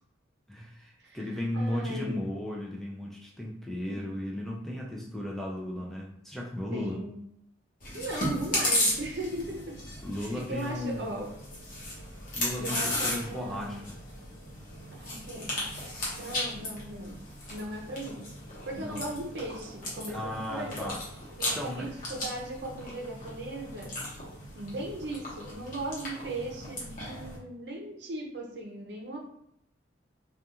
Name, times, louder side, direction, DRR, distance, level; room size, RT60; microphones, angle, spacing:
voice 1, 0.5-7.0 10.0-11.1 12.3-13.9 18.7-19.1 20.1-21.0 21.5-21.9, left 1 dB, ahead, -3 dB, 0.3 m, -35 dB
voice 2, 1.5-2.2 3.9-4.0 4.9-5.1 5.7-5.8 6.7-7.2 7.9-9.8 10.3-11.3 12.6-13.8 14.9-15.7 16.1-17.2 17.5-18.3 18.7-20.9 21.4-23.9 24.5-29.2, right 1 dB, 65° right, 0 dB, 0.6 m, -38 dB
Chewing mastication, 7.8-27.4, left 1 dB, 50° left, 0.9 m, -36 dB
2.4 x 2.3 x 2.8 m, 0.76 s
head